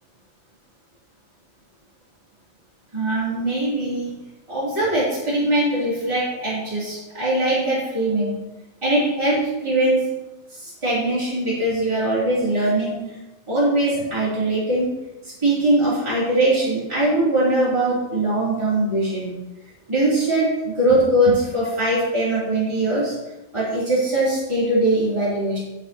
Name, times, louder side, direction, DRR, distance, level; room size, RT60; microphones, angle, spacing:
voice 1, 2.9-4.1 4.5-8.4 8.8-10.1 10.5-13.2 13.5-14.9 15.2-19.3 19.9-23.2 23.5-25.6, right 1 dB, 20° right, -10 dB, 3.1 m, -21 dB
11.5 x 4.7 x 4.3 m, 1.0 s
omnidirectional pair, 1.3 m